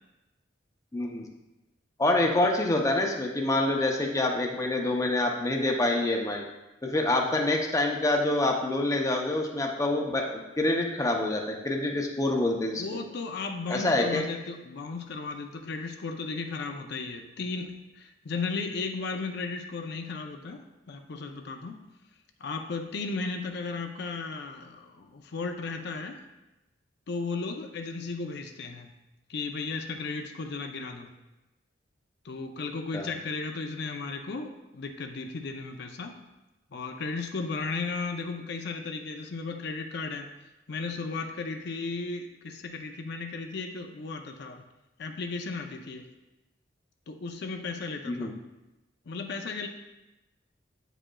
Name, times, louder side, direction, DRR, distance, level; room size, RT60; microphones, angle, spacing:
voice 1, 0.9-1.3 2.0-6.4 6.8-12.8 13.7-14.2 32.9-33.0 48.1-48.3, left 2 dB, 15° left, 1 dB, 0.6 m, -26 dB
voice 2, 12.8-20.6 20.9-21.8 22.4-26.2 27.1-28.9 29.3-31.1 32.2-36.1 36.7-40.3 40.7-44.6 45.0-46.0 47.1-48.3 49.1-49.7, left 4 dB, 60° left, 4 dB, 0.5 m, -35 dB
8.6 x 5.0 x 2.3 m, 1.0 s
head